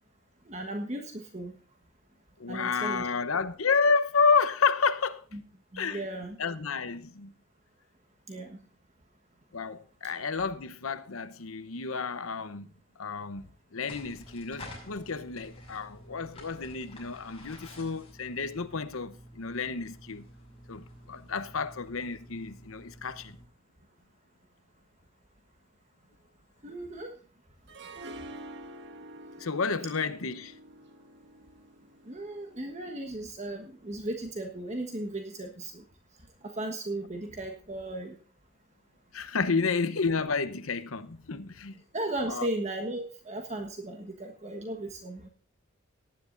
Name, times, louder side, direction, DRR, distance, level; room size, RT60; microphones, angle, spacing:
voice 1, 0.5-1.5 2.5-3.1 5.3-5.4 5.7-6.4 8.3-8.6 26.6-27.1 32.0-35.8 36.4-38.2 39.5-39.6 41.9-45.3, right 1 dB, 35° right, 1.3 m, -36 dB
voice 2, 2.4-5.2 5.7-6.1 6.4-7.3 9.5-12.7 13.0-20.2 20.7-23.4 29.4-30.6 39.1-41.8 42.3-42.5, left 5 dB, 85° left, 0.9 m, -30 dB
sound 1, 13.9-23.5, left 1 dB, 25° left, 6.1 m, -50 dB
Harp, 27.7-32.7, right 1 dB, 55° right, 1.3 m, -47 dB
19.0 x 10.5 x 2.6 m
head